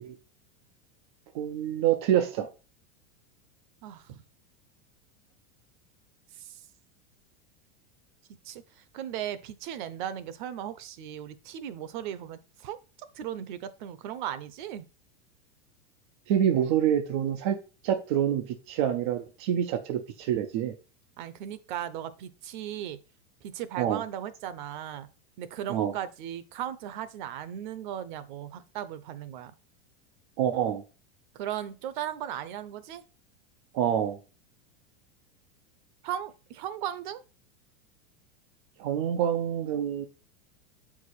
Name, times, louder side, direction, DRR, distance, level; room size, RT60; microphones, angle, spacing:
voice 1, 1.3-2.5 16.3-17.6 17.8-20.7 23.8-24.0 25.7-25.9 30.4-30.8 33.7-34.2 38.8-40.0, right 10 dB, 25° right, 0.4 m, -26 dB
voice 2, 3.8-4.2 6.4-6.6 8.4-12.8 13.1-14.9 21.2-23.0 23.4-25.1 25.4-29.5 31.3-33.0 36.0-37.2, right 10 dB, 45° right, 0.7 m, -37 dB
7.7 x 4.8 x 4.1 m
supercardioid pair, 175°, 35 cm